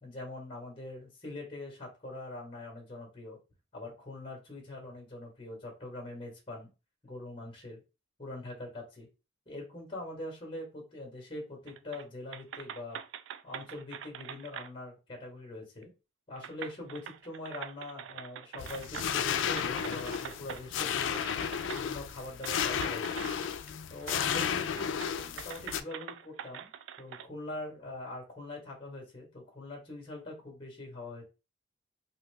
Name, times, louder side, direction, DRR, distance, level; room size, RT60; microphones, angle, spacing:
voice 1, 0.0-3.4 3.7-6.7 7.0-7.8 8.2-9.1 9.5-13.0 13.4-15.9 16.3-21.2 21.7-23.2 23.9-26.7 27.0-31.2, left 2 dB, 30° left, 0 dB, 1.4 m, -43 dB
sound 1, 11.7-12.1 12.3-14.7 15.8-15.9 16.4-19.2 19.6-20.6 21.1-21.8 22.4-23.7 24.0-24.5 24.8-27.3, right 9 dB, 85° right, 0.3 m, -44 dB
sound 2, 18.6-25.8, left 8 dB, 85° left, 0.3 m, -33 dB
2.8 x 2.6 x 3.3 m, 0.29 s
head